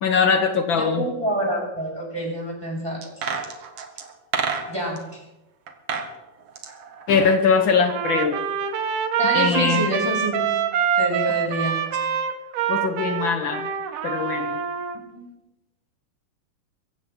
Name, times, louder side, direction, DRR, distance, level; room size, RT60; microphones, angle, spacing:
voice 1, 0.0-1.0 7.1-8.4 9.3-9.8 12.7-13.7 14.0-14.6, left 5 dB, 85° left, 5 dB, 1.0 m, -21 dB
voice 2, 0.7-3.0 4.7-5.2 9.2-10.4 11.0-11.8 15.1-15.3, equal, 5° right, -2 dB, 6.6 m, -27 dB
sound 1, 3.0-5.0 5.7-6.1 6.4-7.8 8.0-8.1, right 6 dB, 55° right, 2.3 m, -29 dB
Trumpet, 7.9-15.0, right 8 dB, 70° right, 2.7 m, -25 dB
24.0 x 15.5 x 3.9 m, 0.95 s
omnidirectional pair, 3.9 m